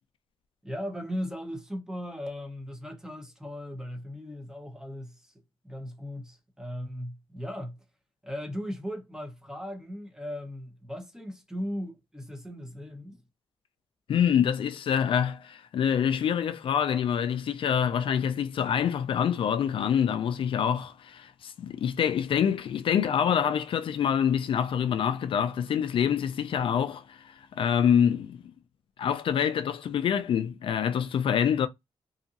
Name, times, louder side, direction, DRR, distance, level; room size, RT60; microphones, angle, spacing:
voice 1, 0.6-5.3 5.6-7.8 8.2-13.2, equal, 5° right, 0.9 m, -37 dB
voice 2, 14.1-28.4 29.0-31.7, left 8 dB, 65° left, 0.3 m, -26 dB
2.7 x 2.5 x 2.5 m
cardioid pair, 105°, 10 cm